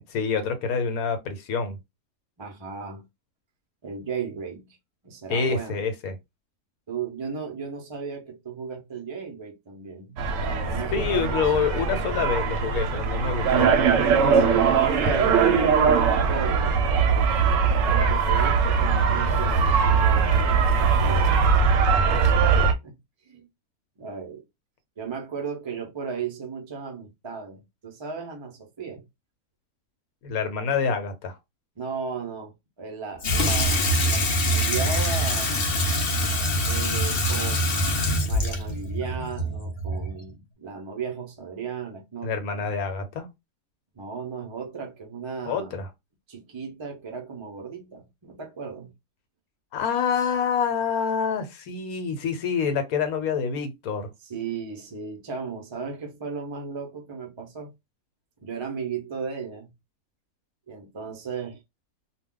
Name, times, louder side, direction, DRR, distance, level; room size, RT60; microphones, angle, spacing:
voice 1, 0.1-1.8 5.3-6.1 10.9-13.7 30.2-31.4 42.2-43.3 45.4-45.9 49.7-54.1, left 6 dB, 75° left, 1.1 m, -27 dB
voice 2, 2.4-3.0 3.8-4.8 5.0-5.8 6.9-11.5 14.3-21.5 22.1-23.0 23.2-23.5 24.0-24.4 25.0-29.1 31.8-35.7 36.7-42.7 43.9-45.8 46.3-48.9 54.2-57.7 58.4-59.7 60.7-61.6, right 6 dB, 50° right, 0.3 m, -36 dB
sound 1, 10.2-22.7, right 5 dB, 70° right, 0.8 m, -21 dB
Water tap faucet / Sink (filling or washing), 33.2-40.2, equal, 55° left, 0.7 m, -24 dB
2.3 x 2.2 x 3.6 m
omnidirectional pair, 1.6 m